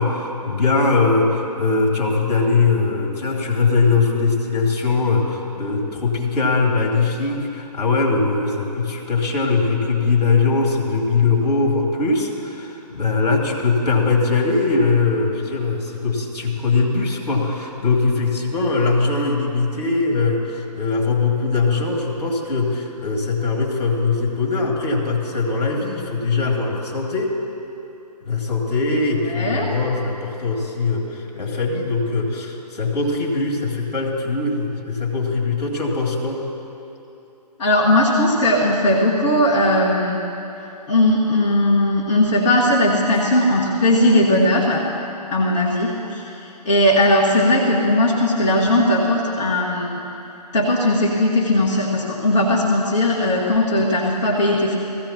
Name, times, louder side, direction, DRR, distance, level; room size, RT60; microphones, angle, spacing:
voice 1, 0.0-27.4 28.2-36.4, left 4 dB, 65° left, -1 dB, 2.7 m, -21 dB
voice 2, 29.3-29.7 37.6-40.2 40.9-44.9 45.3-50.0 50.5-54.8, left 1 dB, 45° left, -6 dB, 1.8 m, -18 dB
18.0 x 15.5 x 3.0 m, 2.9 s
figure-of-eight pair, 140°, 21 cm